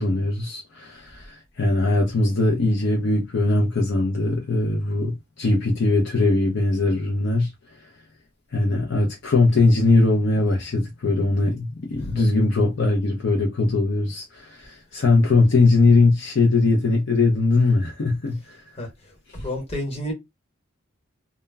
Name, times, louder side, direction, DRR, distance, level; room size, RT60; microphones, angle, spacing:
voice 1, 0.0-7.5 7.8-7.9 8.5-18.6, left 2 dB, 55° left, 0.5 m, -20 dB
voice 2, 18.7-20.1, left 1 dB, 30° left, 1.1 m, -31 dB
2.2 x 2.1 x 3.3 m
head